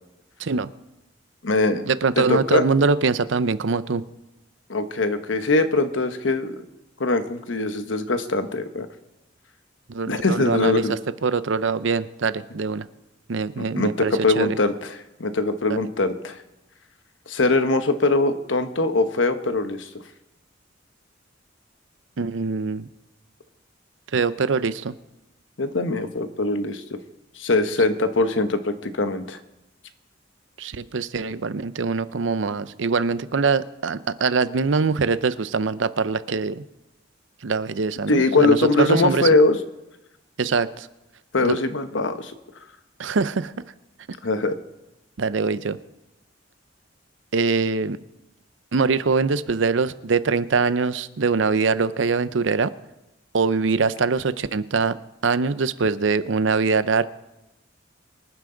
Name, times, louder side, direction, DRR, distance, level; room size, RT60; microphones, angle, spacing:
voice 1, 0.4-0.7 1.9-4.0 9.9-12.8 13.3-14.5 15.7-15.8 22.2-22.9 24.1-24.9 30.6-36.6 37.4-39.3 40.4-40.9 41.4-41.6 43.0-43.5 45.2-45.8 47.3-48.0 48.7-52.7 53.3-55.0 55.2-57.0, right 4 dB, 75° right, 15 dB, 0.6 m, -23 dB
voice 2, 1.4-1.8 2.2-2.6 4.7-6.6 7.0-8.9 10.1-10.9 13.8-16.4 17.3-19.9 25.6-27.0 27.4-29.4 38.1-39.6 41.3-42.3 44.2-44.6, left 2 dB, 80° left, 9 dB, 1.1 m, -22 dB
24.5 x 9.5 x 3.9 m, 0.97 s
head